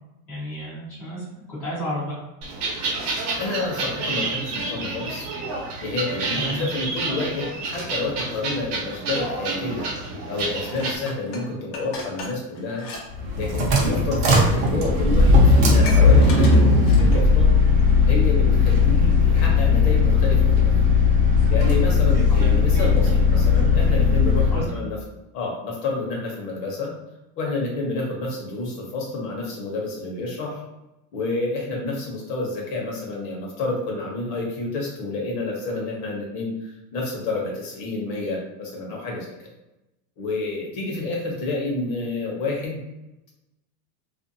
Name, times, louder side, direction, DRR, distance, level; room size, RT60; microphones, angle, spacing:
voice 1, 0.3-2.2 6.3-6.7 22.3-22.4 22.7-22.8 24.5-24.7, equal, 5° left, -14 dB, 0.4 m, -32 dB
sound 1, 2.4-11.0, right 3 dB, 80° right, 0.8 m, -29 dB
voice 2, 3.4-5.3 5.8-9.9 10.3-12.9 13.3-17.5 18.1-20.7 21.5-25.0 25.3-26.9 27.4-30.6 31.1-39.3 40.2-42.8, left 3 dB, 50° left, -1 dB, 0.8 m, -29 dB
Dishes pots and pans, 10.6-13.1 13.3-13.6 14.4-14.5 14.8-14.9 15.1-17.4 17.8-17.9, left 3 dB, 90° left, 0.8 m, -37 dB
sound 2, 13.1-24.7, left 4 dB, 45° right, 0.6 m, -17 dB
2.5 x 2.2 x 2.6 m, 0.95 s
supercardioid pair, 175°, 45 cm